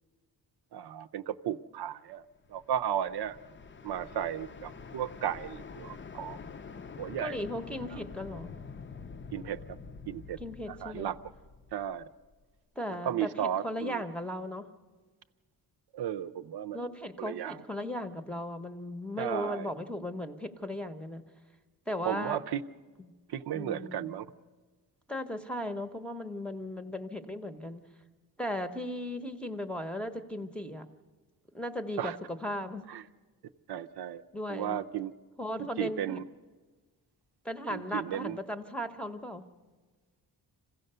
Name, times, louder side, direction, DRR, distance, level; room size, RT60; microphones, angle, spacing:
voice 1, 0.7-2.2 2.5-3.4 3.8-6.4 7.0-7.4 7.9-8.0 9.3-9.6 10.1-10.4 10.8-11.2 11.7-12.0 13.0-14.0 15.9-16.9 17.2-17.6 19.2-19.7 22.0-22.6 23.3-24.3 32.0-32.2 32.9-33.0 33.7-34.2 34.5-35.1 35.6-36.2 37.7-38.4, right 10 dB, 75° right, 10 dB, 0.7 m, -34 dB
sound 1, 2.4-12.4, left 5 dB, 30° left, 0.5 m, -46 dB
voice 2, 7.2-8.5 10.4-11.1 12.8-14.7 16.7-21.2 21.9-22.5 23.0-23.1 23.5-24.2 25.1-27.8 28.4-30.9 31.5-32.8 34.3-34.8 35.4-36.2 37.4-39.4, left 1 dB, 5° left, 8 dB, 0.8 m, -37 dB
26.5 x 16.0 x 6.7 m, 1.4 s
wide cardioid pair, 150°, 39 cm